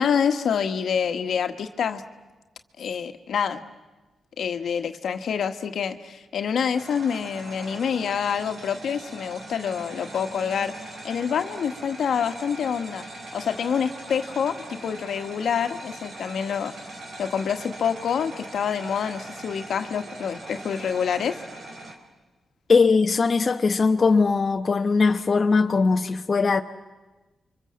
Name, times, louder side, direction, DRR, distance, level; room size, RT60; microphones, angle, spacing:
voice 1, 0.0-2.0 2.8-3.6 4.4-10.7 11.0-13.1 13.3-16.7 17.2-21.4, left 7 dB, 75° left, 1.4 m, -27 dB
sound 1, 6.7-21.9, right 2 dB, 65° right, 4.2 m, -41 dB
voice 2, 22.7-26.6, left 4 dB, 50° left, 0.9 m, -20 dB
29.5 x 24.5 x 7.5 m
cardioid pair, 60°, 0 cm